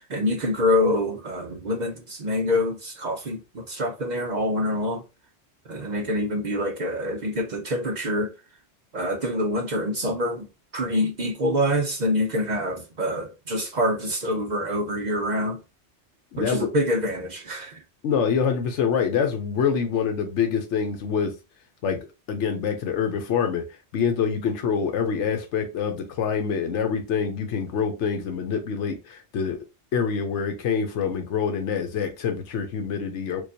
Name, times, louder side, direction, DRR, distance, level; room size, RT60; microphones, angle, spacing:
voice 1, 0.0-5.0 5.7-8.3 8.9-10.5 10.7-15.6 16.4-17.8, left 1 dB, 50° right, 0.6 m, -26 dB
voice 2, 16.3-16.7 18.0-21.3 21.8-29.6 29.9-33.4, left 6 dB, 85° left, 1.0 m, -26 dB
4.6 x 2.5 x 2.7 m
omnidirectional pair, 1.2 m